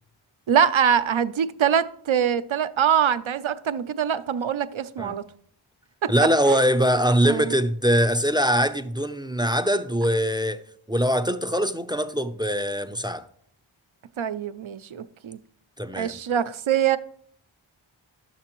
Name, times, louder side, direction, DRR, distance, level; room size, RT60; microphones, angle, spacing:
voice 1, 0.5-5.2 6.0-6.1 6.5-6.6 7.3-7.5 14.2-15.4 16.0-17.0, right 8 dB, 70° right, 0.6 m, -23 dB
voice 2, 6.1-10.6 10.9-13.2 15.8-16.2, equal, 10° right, 0.5 m, -22 dB
11.5 x 7.5 x 3.0 m
wide cardioid pair, 45°, 49 cm